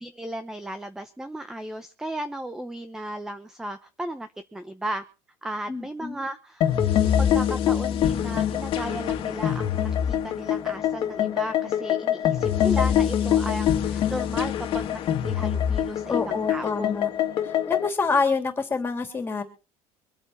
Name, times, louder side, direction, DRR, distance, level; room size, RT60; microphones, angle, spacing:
voice 1, 0.0-5.0 5.4-6.8 7.2-16.9, right 1 dB, 5° right, 10 dB, 0.8 m, -35 dB
voice 2, 5.7-6.2 16.1-17.1 17.4-19.4, left 4 dB, 15° left, 5 dB, 3.4 m, -27 dB
sound 1, 6.6-17.9, left 10 dB, 40° left, 2.1 m, -24 dB
24.5 x 8.7 x 4.4 m, 0.34 s
cardioid pair, 165°, 13 cm